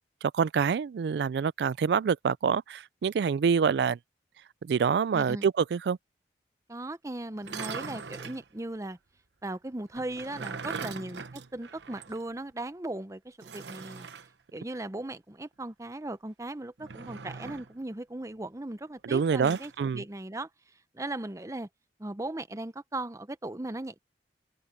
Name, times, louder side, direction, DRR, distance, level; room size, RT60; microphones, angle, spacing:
voice 1, 0.2-4.0 4.6-6.0 19.0-20.0, right 6 dB, 65° right, 0.3 m, -26 dB
voice 2, 5.1-5.5 6.7-9.0 9.4-14.1 14.5-20.5 20.9-21.7 22.0-24.0, right 2 dB, 20° right, 0.7 m, -38 dB
sound 1, 7.4-8.4 10.0-12.2 12.5-12.6 13.4-14.3 16.8-17.8 19.1-19.8, right 5 dB, 85° right, 0.9 m, -41 dB
open air
head